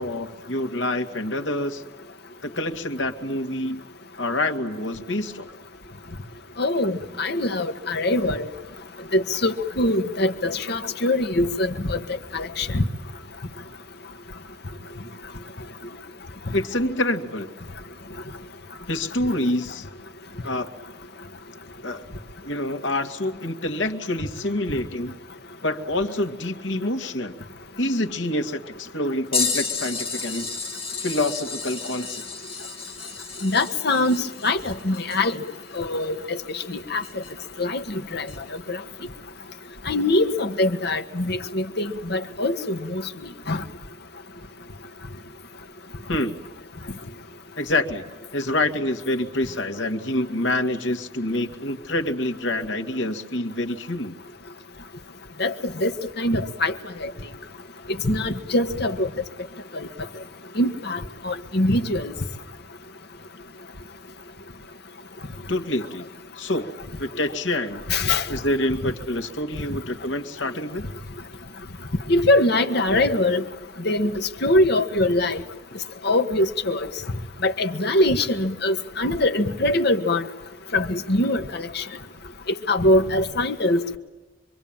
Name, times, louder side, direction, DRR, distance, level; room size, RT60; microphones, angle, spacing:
voice 1, 0.0-1.8 2.4-3.8 4.2-5.5 16.5-17.5 18.9-19.9 20.4-20.7 21.8-22.1 22.4-25.2 25.6-27.3 27.8-30.5 31.0-32.2 46.1-46.4 47.6-48.0 48.3-54.2 65.5-66.1 66.4-66.7 67.0-67.8 68.3-70.8, left 1 dB, 80° left, 6 dB, 2.3 m, -26 dB
voice 2, 6.6-8.5 9.1-12.0 12.3-12.8 33.4-35.4 35.7-37.0 37.6-37.8 38.1-38.3 38.7-38.8 39.9-43.0 43.5-43.6 55.4-55.5 55.8-55.9 56.2-56.7 57.0-57.1 58.0-59.1 59.7-59.9 60.6-62.1 67.9-68.2 72.1-73.4 73.9-75.4 76.0-76.9 77.4-80.3 80.7-81.8 82.7-84.0, left 1 dB, 60° left, 7 dB, 1.8 m, -23 dB
sound 1, 29.3-37.5 38.3-38.4 40.6-40.7 41.8-41.9 43.0-43.1, left 5 dB, 30° left, 4.3 m, -32 dB
26.0 x 24.0 x 9.0 m, 1.1 s
head